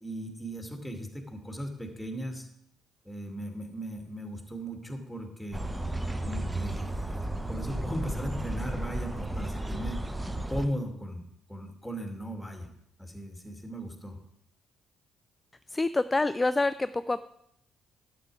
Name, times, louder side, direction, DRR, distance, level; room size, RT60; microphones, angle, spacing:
voice 1, 0.0-2.5 3.0-5.6 6.2-10.0 10.5-11.2 11.5-12.7 13.0-14.2, equal, 5° left, 3 dB, 2.2 m, -37 dB
sound 1, 5.5-10.7, right 1 dB, 10° right, 1.0 m, -33 dB
voice 2, 15.7-17.2, left 2 dB, 20° left, 14 dB, 0.3 m, -27 dB
11.5 x 7.2 x 4.8 m, 0.73 s
figure-of-eight pair, 45°, 0 cm